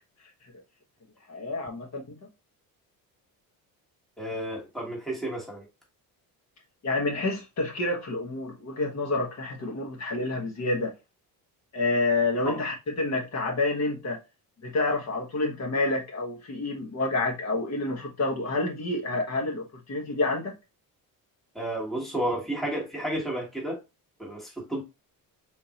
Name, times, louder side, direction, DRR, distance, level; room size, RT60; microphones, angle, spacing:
voice 1, 1.3-2.2 6.8-10.9 11.7-14.2 14.6-20.5, left 2 dB, 45° left, 1.4 m, -28 dB
voice 2, 4.2-5.7 12.4-12.6 21.5-23.8 24.2-24.8, right 1 dB, ahead, 1.3 m, -32 dB
3.7 x 3.5 x 2.9 m
cardioid pair, 145°, 37 cm